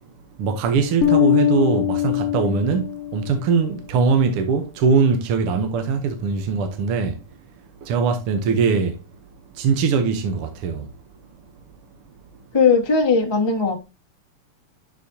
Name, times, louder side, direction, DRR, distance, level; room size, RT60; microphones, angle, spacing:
voice 1, 0.4-7.2 7.8-9.0 9.5-10.9, right 5 dB, 65° right, 1.5 m, -21 dB
Bass guitar, 1.0-3.4, left 12 dB, 70° left, 1.4 m, -21 dB
voice 2, 12.5-13.8, left 5 dB, 40° left, 0.3 m, -18 dB
11.5 x 4.2 x 2.7 m
omnidirectional pair, 3.3 m